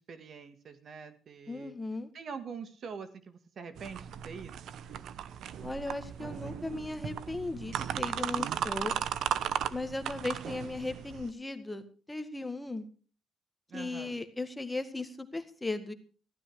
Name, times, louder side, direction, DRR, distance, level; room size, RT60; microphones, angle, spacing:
voice 1, 0.0-1.7 2.1-4.7 13.7-14.2, right 5 dB, 55° right, 10 dB, 1.8 m, -44 dB
voice 2, 1.5-2.1 5.6-8.9 9.7-12.9 13.7-15.9, left 2 dB, 15° left, 9 dB, 1.8 m, -37 dB
sound 1, 3.8-11.3, right 9 dB, 75° right, 0.9 m, -36 dB
15.5 x 12.5 x 4.8 m, 0.38 s
cardioid pair, 90°, 0 cm